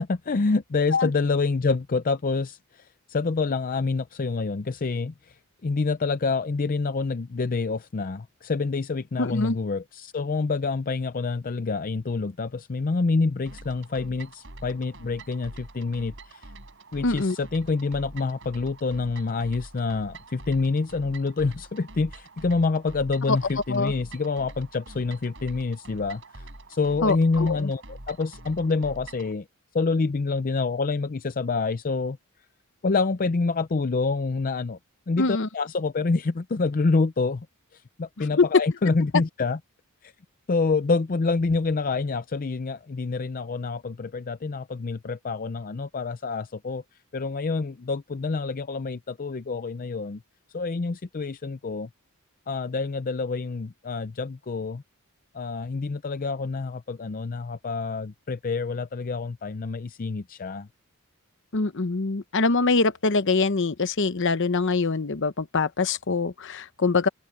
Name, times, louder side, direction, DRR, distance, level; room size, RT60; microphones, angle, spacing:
voice 1, 0.0-16.5 16.9-29.5 29.7-32.2 32.8-34.8 35.1-37.5 37.7-39.6 40.0-40.1 40.5-46.8 47.1-50.2 50.5-51.9 52.5-54.8 55.3-60.7, left 4 dB, 40° left, 0.5 m, -27 dB
voice 2, 9.2-9.6 17.0-17.3 23.7-23.9 27.0-27.6 35.2-35.5 38.4-38.5 61.5-67.1, left 3 dB, 55° left, 0.9 m, -24 dB
sound 1, 13.5-29.3, right 2 dB, 55° right, 6.0 m, -45 dB
head